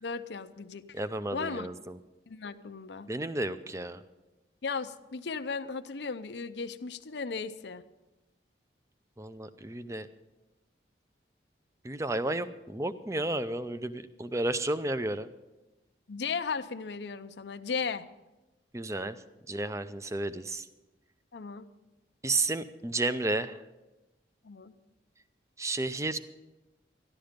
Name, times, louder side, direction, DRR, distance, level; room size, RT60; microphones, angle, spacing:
voice 1, 0.0-0.8 1.3-1.7 2.3-3.1 4.6-7.8 16.1-18.0 21.3-21.7 24.4-24.7, left 5 dB, 70° left, 10 dB, 0.6 m, -36 dB
voice 2, 0.9-2.0 3.1-4.0 9.2-10.1 11.8-15.3 18.7-19.2 19.5-20.7 22.2-23.6 25.6-26.2, right 2 dB, 15° right, 12 dB, 0.5 m, -32 dB
13.5 x 11.5 x 5.1 m, 1.1 s
head